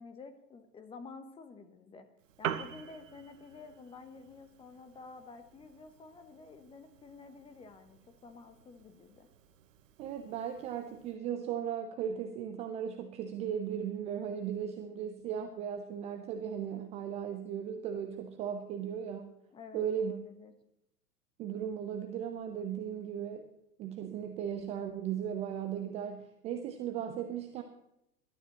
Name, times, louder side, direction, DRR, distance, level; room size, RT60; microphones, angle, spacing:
voice 1, 0.0-2.1 2.4-9.3 19.5-20.5, left 4 dB, 10° left, 9 dB, 1.0 m, -51 dB
Piano, 2.2-11.2, right 9 dB, 55° right, 1.1 m, -46 dB
voice 2, 10.0-19.3 19.7-20.1 21.4-23.5 23.8-27.6, right 8 dB, 15° right, 6 dB, 0.6 m, -37 dB
20.5 x 12.0 x 3.0 m, 0.83 s
figure-of-eight pair, 110°, 47 cm